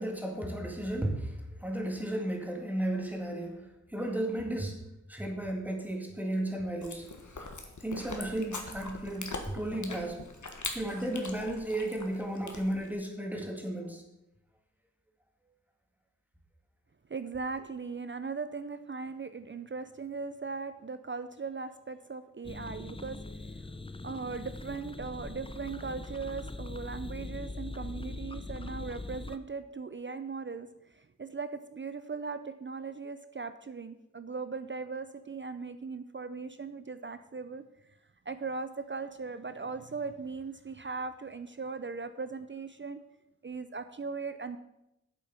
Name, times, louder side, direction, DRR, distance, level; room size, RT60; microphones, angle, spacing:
voice 1, 0.0-4.8 5.1-7.1 7.8-10.2 10.7-14.0, right 1 dB, 5° right, 1 dB, 2.0 m, -34 dB
Chewing mastication, 6.8-12.9, left 3 dB, 75° left, 1.4 m, -42 dB
voice 2, 17.1-23.2 23.5-23.8 24.0-37.6 38.3-43.0 43.4-44.6, right 4 dB, 40° right, 11 dB, 0.5 m, -39 dB
sound 1, 22.4-29.4, left 2 dB, 20° left, 0.6 m, -41 dB
8.3 x 7.7 x 5.9 m, 0.86 s
wide cardioid pair, 70°, 30 cm